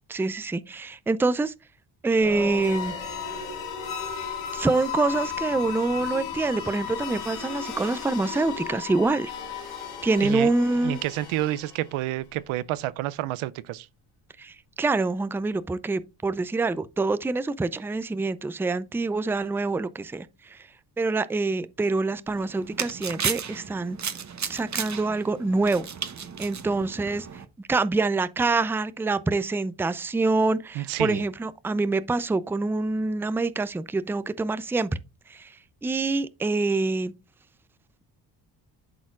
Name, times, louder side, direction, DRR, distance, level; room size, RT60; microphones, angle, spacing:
voice 1, 0.1-1.5 2.0-2.9 4.5-9.3 10.0-11.0 14.4-20.6 21.0-24.0 24.5-25.9 26.4-27.4 27.7-34.9 35.3-35.5 35.8-37.1, right 3 dB, 5° right, 0.4 m, -26 dB
sound 1, 2.1-12.1, left 6 dB, 80° left, 1.9 m, -35 dB
voice 2, 10.8-13.9 30.8-31.2, right 15 dB, 85° right, 0.6 m, -29 dB
sound 2, 22.3-27.5, right 7 dB, 35° right, 0.9 m, -34 dB
12.0 x 4.2 x 2.4 m
supercardioid pair, 60°, 48 cm